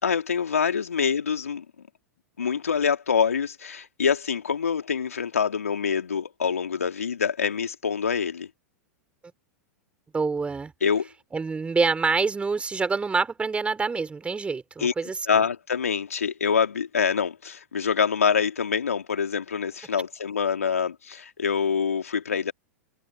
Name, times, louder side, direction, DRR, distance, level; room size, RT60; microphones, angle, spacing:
voice 1, 0.0-1.6 2.4-8.5 10.8-11.1 14.8-14.9 15.3-22.5, left 6 dB, 80° left, 3.5 m, -25 dB
voice 2, 10.1-10.7 11.3-15.4, right 4 dB, 15° right, 4.4 m, -26 dB
hypercardioid pair, 95°, 8 cm